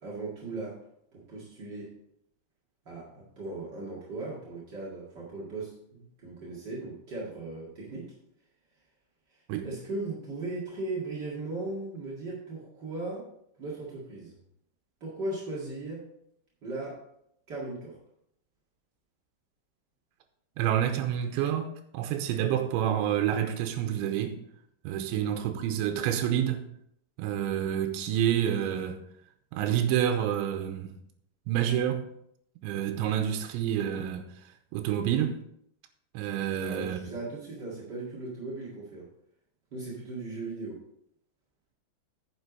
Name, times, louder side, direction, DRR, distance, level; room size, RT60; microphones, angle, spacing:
voice 1, 0.0-0.8 1.1-1.9 2.8-8.1 9.6-13.3 13.6-14.4 15.0-16.0 16.6-17.0 17.5-18.0 36.6-39.1 39.7-40.8, right 2 dB, 55° right, 1.2 m, -37 dB
voice 2, 20.6-24.4 24.8-26.6 27.2-29.0 29.5-30.9 31.5-32.1 32.6-34.2 34.7-35.4 36.1-37.1, right 10 dB, 85° right, 3.1 m, -28 dB
9.8 x 7.1 x 4.0 m
omnidirectional pair, 5.2 m